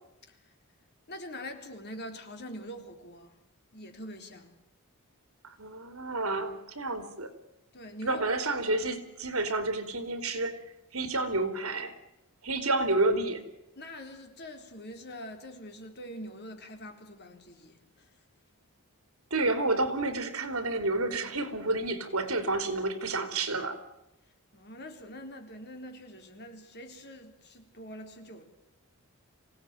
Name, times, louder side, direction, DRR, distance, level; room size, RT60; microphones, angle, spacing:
voice 1, 0.2-0.5 1.1-3.4 3.7-4.5 7.7-8.3 13.8-18.2 24.3-28.4, equal, 50° left, 5 dB, 3.9 m, -44 dB
voice 2, 5.4-7.3 8.1-10.6 10.9-11.9 12.4-13.4 19.3-23.8, right 2 dB, 70° right, 9 dB, 3.4 m, -30 dB
26.5 x 17.5 x 9.2 m, 0.92 s
head